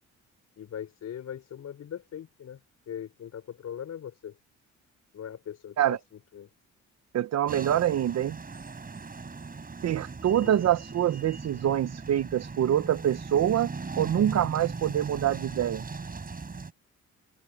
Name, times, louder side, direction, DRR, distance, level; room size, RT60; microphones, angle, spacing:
voice 1, 0.6-2.6 2.9-4.4 5.1-6.0 6.3-6.5 10.4-10.6, left 9 dB, 60° left, 4.7 m, -40 dB
voice 2, 7.1-8.4 9.8-13.7 14.0-15.9, right 11 dB, 60° right, 0.9 m, -25 dB
sound 1, 7.5-16.7, right 4 dB, 30° right, 5.9 m, -39 dB
cardioid pair, 90°, 30 cm